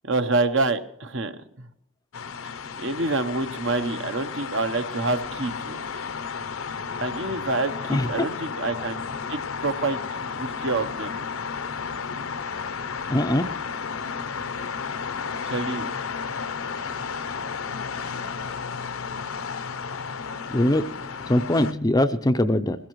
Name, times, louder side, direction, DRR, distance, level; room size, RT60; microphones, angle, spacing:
voice 1, 0.0-1.7 2.4-2.5 2.8-5.8 7.0-9.0 9.3-10.0 10.4-11.1 15.4-15.9, right 3 dB, 60° right, 10 dB, 0.9 m, -27 dB
sound 1, 2.1-21.7, left 5 dB, 70° left, 0.7 m, -33 dB
voice 2, 7.9-8.3 13.1-13.5 20.5-20.8 21.3-22.8, left 1 dB, 15° left, 10 dB, 0.5 m, -22 dB
21.5 x 16.5 x 3.1 m, 0.79 s
head